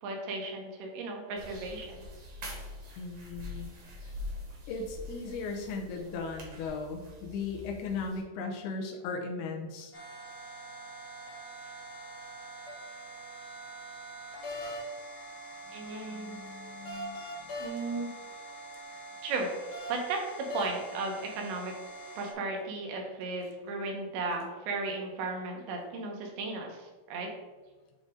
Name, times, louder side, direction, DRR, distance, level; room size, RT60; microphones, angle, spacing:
voice 1, 0.0-2.0 15.7-16.4 17.6-18.1 19.2-19.5 19.9-21.7 22.2-27.3, right 3 dB, 90° right, 1 dB, 3.4 m, -35 dB
sound 1, 1.4-8.2, left 1 dB, 60° right, 1.5 m, -44 dB
voice 2, 3.0-3.7 4.7-9.9 16.0-17.5, left 4 dB, 80° left, 2 dB, 2.6 m, -37 dB
sound 2, 9.9-22.3, right 1 dB, 55° left, 2.1 m, -43 dB
8.8 x 3.9 x 3.7 m, 1.3 s
omnidirectional pair, 5.0 m